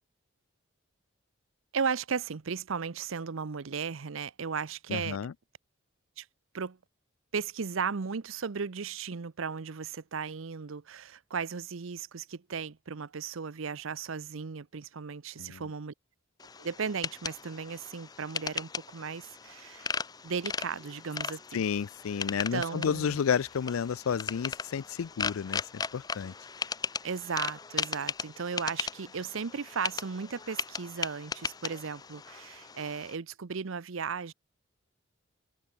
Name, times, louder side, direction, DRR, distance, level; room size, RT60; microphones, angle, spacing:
voice 1, 1.7-5.2 6.2-6.3 6.5-6.8 7.3-15.9 16.6-19.9 20.2-21.6 22.5-23.2 27.0-34.3, right 5 dB, 75° right, 0.7 m, -36 dB
voice 2, 4.9-5.3 15.4-15.6 21.5-26.3, left 7 dB, 85° left, 0.4 m, -31 dB
sound 1, 16.4-33.2, left 5 dB, 20° left, 0.4 m, -38 dB
open air
head